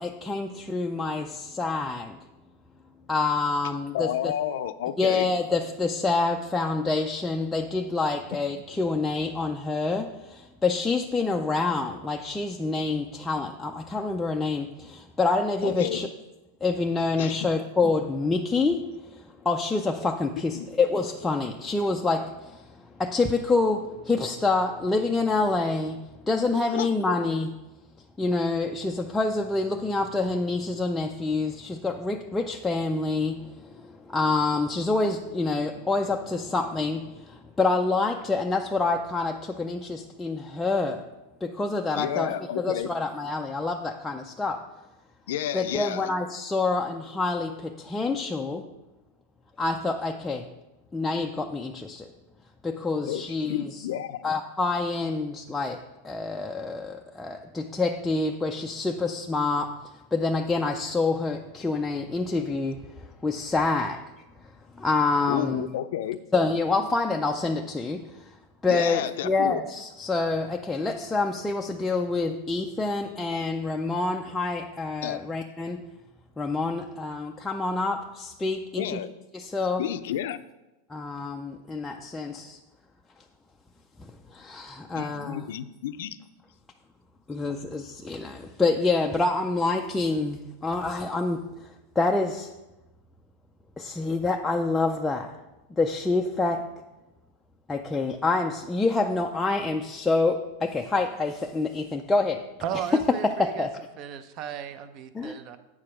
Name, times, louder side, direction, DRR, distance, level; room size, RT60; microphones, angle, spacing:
voice 1, 0.0-2.2 3.1-4.3 5.0-16.1 16.6-27.5 28.2-41.0 41.4-44.6 45.5-48.7 49.6-50.5 50.9-52.1 52.6-53.9 54.2-59.8 60.1-64.0 64.8-65.7 66.3-68.4 68.6-75.8 76.4-79.0 79.3-79.8 80.9-82.6 84.3-85.5 87.3-91.7 92.0-92.5 93.8-95.3 95.8-96.7 97.7-102.5 102.7-102.8 103.2-103.7 105.1-105.3, left 3 dB, 10° left, 1 dB, 0.4 m, -27 dB
voice 2, 3.9-5.3 15.6-16.0 17.2-17.4 20.5-20.7 26.7-27.2 41.9-42.9 45.3-46.1 53.0-54.3 65.3-66.2 68.7-69.6 75.0-75.2 78.8-79.1 79.8-80.4 84.9-86.2, left 11 dB, 70° left, 13 dB, 0.4 m, -31 dB
voice 3, 102.6-103.7 104.0-105.6, right 9 dB, 35° right, 11 dB, 0.6 m, -35 dB
8.4 x 4.9 x 5.8 m, 1.0 s
supercardioid pair, 155°, 0 cm